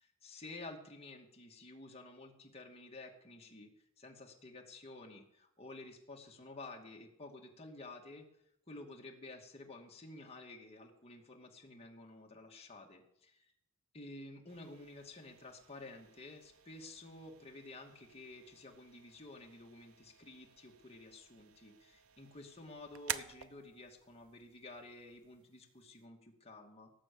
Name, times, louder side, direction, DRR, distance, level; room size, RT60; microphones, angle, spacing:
voice 1, 0.0-3.7 4.0-8.3 8.7-13.5 13.9-26.9, left 2 dB, 30° left, 0 dB, 2.3 m, -52 dB
sound 1, 14.5-26.1, right 9 dB, 75° right, 0.7 m, -51 dB
18.0 x 7.5 x 7.1 m, 0.76 s
head